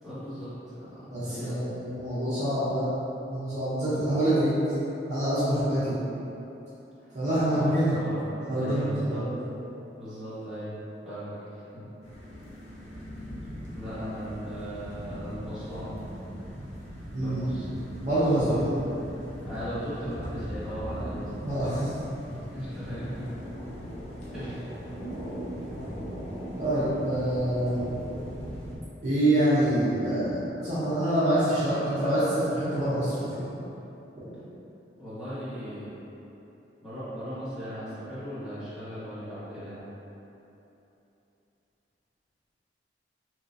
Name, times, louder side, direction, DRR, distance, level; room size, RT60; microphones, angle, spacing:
voice 1, 0.0-1.6 7.0-7.2 7.5-9.3 10.0-10.8 11.0-11.8 12.8-13.1 13.7-16.0 17.2-17.7 18.3-18.6 19.4-21.5 22.3-23.4 24.3-24.7 35.0-35.9 36.8-39.8, equal, 5° right, -16 dB, 1.2 m, -38 dB
voice 2, 1.1-2.9 3.3-4.6 5.1-6.0 7.1-7.9 8.4-9.3 17.1-17.4 18.0-18.7 21.4-21.9 26.6-27.8 29.0-33.5, right 1 dB, 40° right, -13 dB, 0.7 m, -26 dB
sound 1, 12.0-28.8, equal, 40° left, 0.6 m, -39 dB
3.2 x 2.8 x 2.6 m, 3.0 s
head